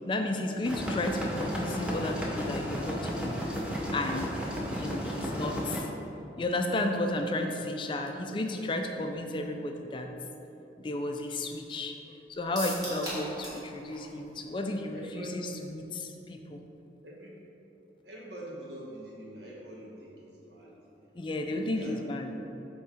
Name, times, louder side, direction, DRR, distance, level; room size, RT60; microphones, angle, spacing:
voice 1, 0.1-3.4 3.9-4.3 4.8-5.9 6.4-10.1 10.8-16.6 20.7-20.8 21.2-22.3, left 2 dB, 30° left, 4 dB, 0.3 m, -33 dB
sound 1, 0.6-5.8, equal, 5° right, 0.7 m, -33 dB
sound 2, 12.6-13.7 13.9-14.0 14.4-14.5, right 1 dB, 20° right, 1.5 m, -37 dB
voice 2, 14.9-15.3 17.0-17.4 18.0-22.4, equal, 75° right, -4 dB, 1.4 m, -44 dB
7.0 x 3.6 x 4.9 m, 3.0 s
head